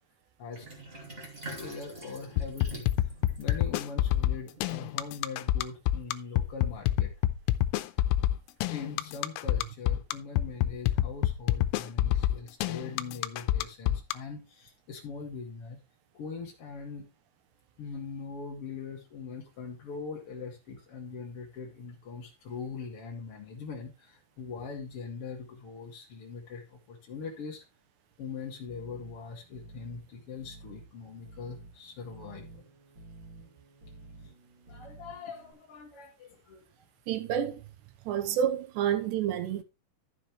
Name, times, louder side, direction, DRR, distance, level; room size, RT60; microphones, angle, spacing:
Sink (filling or washing), 0.5-5.3, right 1 dB, 20° right, 1.5 m, -46 dB
voice 1, 1.5-7.1 8.7-15.8 16.1-17.1 17.8-27.6 28.2-32.6 34.7-36.7, left 5 dB, 55° left, 1.6 m, -42 dB
sound 1, 2.4-14.1, left 13 dB, 90° left, 3.4 m, -27 dB
sound 2, 28.7-35.5, right 2 dB, 35° right, 2.0 m, -51 dB
voice 2, 37.1-37.6 38.1-39.6, right 9 dB, 70° right, 2.8 m, -29 dB
12.0 x 7.7 x 3.1 m
omnidirectional pair, 5.9 m